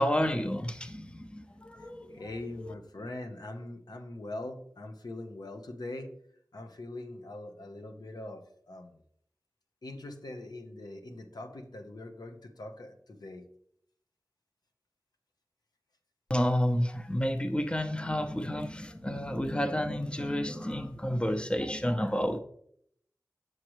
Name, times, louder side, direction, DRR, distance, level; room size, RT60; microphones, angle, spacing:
voice 1, 0.0-2.2 16.3-22.4, equal, 15° left, 0.6 m, -30 dB
voice 2, 2.1-6.1 6.5-8.9 9.8-13.5 18.0-18.1, left 2 dB, 85° left, 0.9 m, -42 dB
7.5 x 6.4 x 3.1 m
wide cardioid pair, 55°, 7 cm